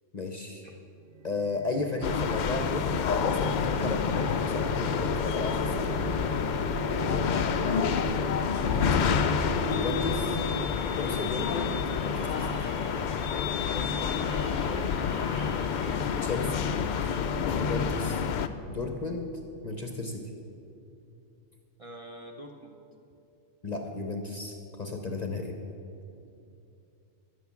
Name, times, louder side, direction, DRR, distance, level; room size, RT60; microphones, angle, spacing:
voice 1, 0.1-0.6 1.2-2.9 3.2-6.0 6.9-7.3 8.7-9.2 9.7-10.4 10.9-12.7 16.2-16.7 17.6-18.2 18.7-19.3 19.6-20.2 23.6-25.6, left 3 dB, 40° left, 3 dB, 0.8 m, -34 dB
sound 1, 1.1-10.7, right 4 dB, 90° right, 1.0 m, -39 dB
sound 2, 2.0-18.5, left 6 dB, 85° left, 0.4 m, -28 dB
voice 2, 8.3-8.8 13.7-15.4 21.8-22.8, right 1 dB, 30° right, -1 dB, 0.7 m, -44 dB
sound 3, 9.2-17.7, right 4 dB, 70° right, 1.4 m, -48 dB
11.5 x 8.5 x 7.0 m, 2.7 s
omnidirectional pair, 1.4 m